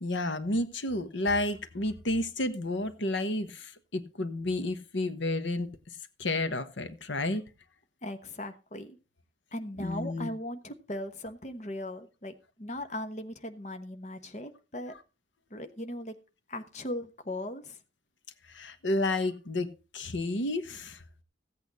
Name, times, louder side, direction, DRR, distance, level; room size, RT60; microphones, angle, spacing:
voice 1, 0.0-5.7 6.2-7.4 9.8-10.3 18.5-21.0, left 2 dB, 85° left, 1.2 m, -31 dB
voice 2, 8.0-9.0 9.5-14.9 15.5-16.2 16.5-17.8, left 1 dB, 40° left, 1.1 m, -38 dB
15.5 x 8.5 x 4.1 m
head